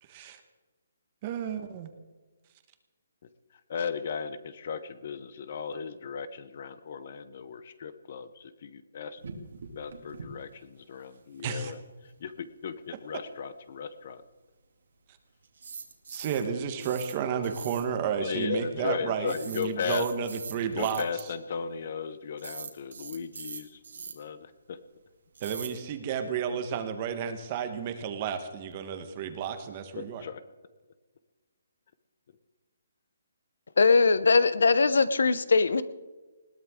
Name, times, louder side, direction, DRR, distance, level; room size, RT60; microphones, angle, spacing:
voice 1, 0.1-0.4 1.2-1.9 11.4-11.7 16.1-21.3 25.4-30.2, right 7 dB, 20° right, 8 dB, 1.2 m, -32 dB
voice 2, 3.7-9.2 9.8-14.2 18.2-20.1 20.8-23.8 24.1-24.8 30.0-30.4, left 6 dB, 35° left, 14 dB, 0.8 m, -36 dB
sound 1, 9.2-10.3 10.5-10.6 10.9-11.0 15.5-16.5 16.8-17.2 17.4-17.9 19.3-21.2 22.4-24.1 25.4-25.7, right 5 dB, 60° right, 2.5 m, -42 dB
voice 3, 33.8-35.8, left 4 dB, 70° left, 15 dB, 0.9 m, -21 dB
20.5 x 17.5 x 3.7 m, 1.3 s
hypercardioid pair, 180°, 0 cm